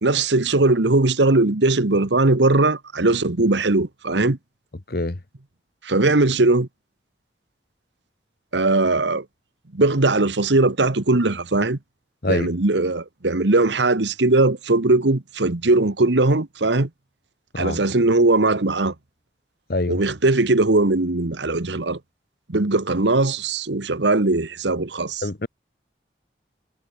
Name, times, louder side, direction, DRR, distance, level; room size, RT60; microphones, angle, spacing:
voice 1, 0.0-4.4 5.8-6.7 8.5-9.2 9.7-11.8 12.3-16.9 17.6-18.9 19.9-22.0 22.5-25.2, right 2 dB, 85° right, 1.4 m, -19 dB
voice 2, 4.9-5.2 12.2-12.5 17.5-17.8 19.7-20.0 25.2-25.5, left 2 dB, 55° left, 1.2 m, -24 dB
head